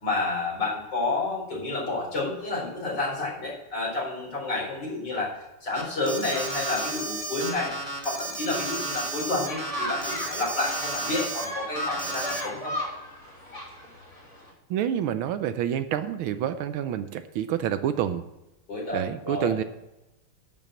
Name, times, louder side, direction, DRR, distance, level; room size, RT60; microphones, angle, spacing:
voice 1, 0.0-5.3 5.6-7.7 8.0-12.7 18.7-19.5, left 2 dB, 50° left, -4 dB, 4.9 m, -30 dB
Alarm, 5.7-11.4 11.7-12.4, right 3 dB, 15° right, 1.4 m, -33 dB
sound 1, 9.4-14.5, equal, 30° left, 3.1 m, -36 dB
voice 2, 14.7-18.2 18.9-19.6, right 10 dB, 75° right, 10 dB, 1.4 m, -28 dB
11.0 x 5.9 x 7.5 m, 0.94 s
omnidirectional pair, 2.4 m